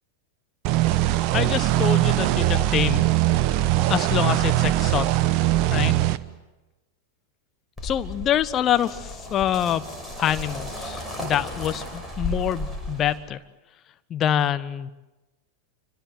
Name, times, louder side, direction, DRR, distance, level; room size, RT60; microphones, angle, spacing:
sound 1, 0.6-6.2, right 15 dB, 40° right, 1.0 m, -21 dB
voice 1, 1.3-3.1 3.9-5.1 5.7-6.0 7.8-9.8 10.2-13.4 14.1-14.9, left 10 dB, 30° left, 13 dB, 1.1 m, -25 dB
sound 2, 7.8-13.2, left 1 dB, 5° left, 6.3 m, -34 dB
27.0 x 25.5 x 7.9 m, 1.1 s
figure-of-eight pair, 90°, 0 cm